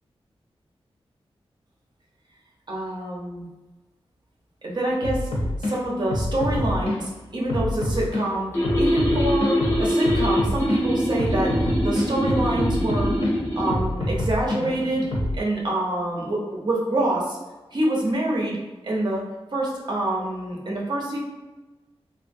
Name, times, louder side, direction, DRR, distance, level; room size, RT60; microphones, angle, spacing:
voice 1, 2.7-3.5 4.6-5.3 5.6-13.2 13.5-15.1 15.4-17.4 17.7-19.3 19.5-21.2, right 1 dB, 45° right, -3 dB, 0.8 m, -26 dB
sound 1, 5.0-5.7 6.1-7.0 7.5-8.2 8.6-10.8 11.2-13.3 13.7-15.4, left 1 dB, 85° left, 0.7 m, -26 dB
sound 2, 8.5-13.8, equal, 25° left, 1.0 m, -24 dB
3.1 x 2.3 x 2.6 m, 1.1 s
wide cardioid pair, 115°, 10 cm